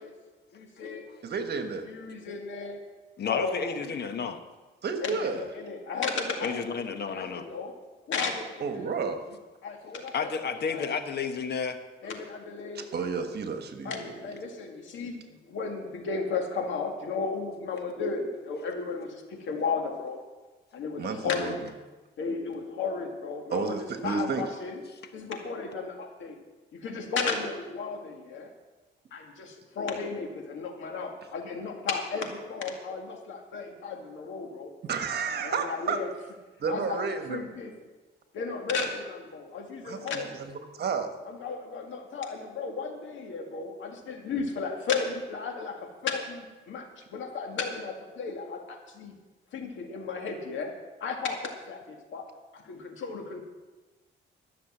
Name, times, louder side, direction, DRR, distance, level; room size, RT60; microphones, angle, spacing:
voice 1, 0.5-1.1 1.8-2.8 3.2-3.8 5.0-6.6 7.1-7.7 8.1-8.9 9.6-10.3 10.7-10.9 12.0-12.9 13.8-20.2 20.7-21.5 22.2-23.7 24.0-24.8 25.1-26.4 26.7-28.5 29.1-34.7 35.4-36.1 36.7-37.7 38.3-40.4 41.2-49.1 49.5-50.7 51.0-52.3 52.5-53.4, left 4 dB, 75° left, 3 dB, 2.1 m, -34 dB
voice 2, 1.2-1.9 4.8-5.4 8.6-9.2 12.7-14.1 21.0-21.5 23.5-24.5 34.8-36.0 36.6-37.4 39.8-40.0 40.4-40.5 40.8-41.1, right 5 dB, 55° right, 7 dB, 1.5 m, -31 dB
voice 3, 3.2-4.4 6.4-7.5 10.1-11.8, left 5 dB, 55° left, 8 dB, 1.1 m, -31 dB
13.5 x 6.6 x 7.4 m, 1.2 s
cardioid pair, 90°, 20 cm